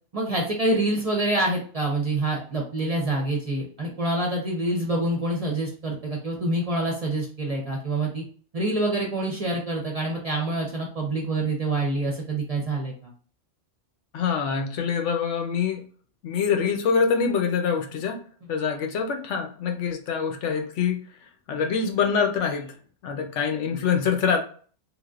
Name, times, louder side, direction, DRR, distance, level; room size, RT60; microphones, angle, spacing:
voice 1, 0.1-8.2 8.5-13.1, right 2 dB, 35° right, -1 dB, 0.7 m, -26 dB
voice 2, 14.1-15.8 16.2-18.2 18.5-21.0 21.5-22.8 23.0-24.4, left 6 dB, 75° left, 4 dB, 0.9 m, -25 dB
3.3 x 2.6 x 2.4 m, 0.43 s
omnidirectional pair, 1.3 m